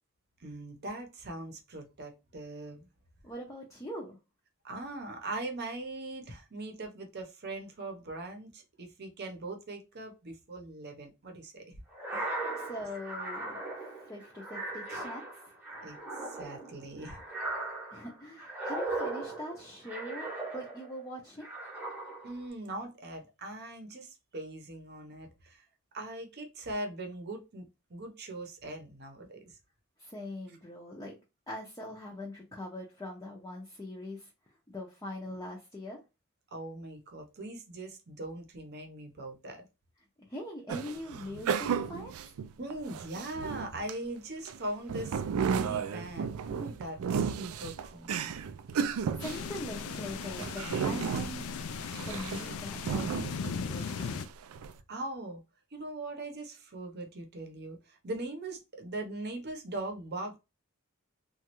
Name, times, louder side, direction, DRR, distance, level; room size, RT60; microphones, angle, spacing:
voice 1, 0.4-2.9 4.6-11.8 12.1-12.3 15.8-16.0 16.2-17.2 22.2-25.7 25.9-29.6 36.5-39.7 42.6-48.3 54.9-55.4 55.7-60.4, right 2 dB, 50° right, 0.8 m, -41 dB
voice 2, 3.2-4.2 12.6-15.3 17.9-21.5 30.0-31.2 31.5-34.3 34.7-36.0 40.2-42.3 48.7-51.5 52.1-54.2, left 1 dB, 15° left, 0.5 m, -42 dB
sound 1, 11.9-21.0 21.4-22.4, right 2 dB, 10° right, 0.9 m, -38 dB
sound 2, 40.7-43.9 44.5-54.1 54.4-54.7, right 6 dB, 80° right, 0.4 m, -34 dB
sound 3, 49.2-54.3, left 6 dB, 75° left, 0.4 m, -38 dB
3.0 x 2.3 x 2.9 m
head